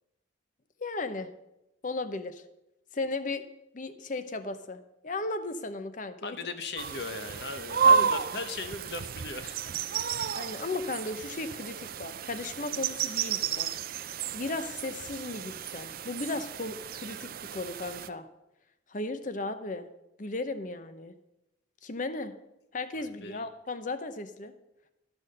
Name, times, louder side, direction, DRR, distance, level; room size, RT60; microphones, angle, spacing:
voice 1, 0.8-1.3 1.8-2.4 2.9-3.4 3.7-6.4 7.8-7.9 10.3-13.7 14.0-18.3 18.9-19.9 20.2-21.1 21.8-22.3 22.7-24.5, left 2 dB, 40° left, 10 dB, 0.8 m, -36 dB
voice 2, 6.2-10.0 22.9-23.5, left 3 dB, 60° left, 8 dB, 1.1 m, -38 dB
sound 1, 6.8-18.1, right 7 dB, 50° right, 0.4 m, -31 dB
12.5 x 6.2 x 6.6 m, 0.90 s
head